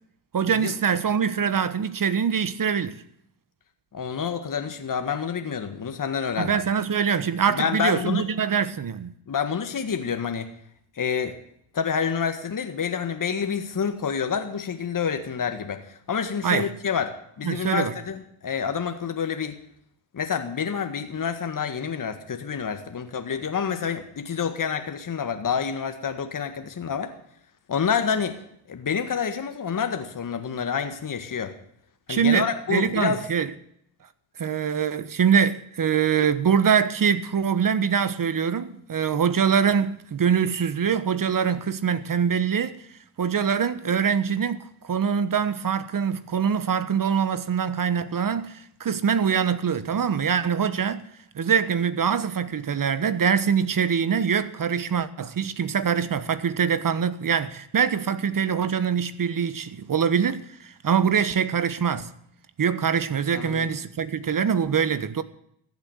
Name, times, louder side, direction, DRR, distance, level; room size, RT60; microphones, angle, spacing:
voice 1, 0.3-2.9 6.4-9.1 16.4-16.7 17.4-17.9 32.1-33.5 34.4-42.8 43.2-51.1 51.3-62.1 62.6-65.2, right 7 dB, 45° right, 1.3 m, -24 dB
voice 2, 3.9-6.6 7.5-8.3 9.3-10.5 11.0-11.4 11.7-19.6 20.1-27.1 27.7-28.4 28.7-31.5 32.1-33.2 63.3-63.7, left 6 dB, 40° left, 1.9 m, -28 dB
15.0 x 8.2 x 9.5 m
supercardioid pair, 55°, 47 cm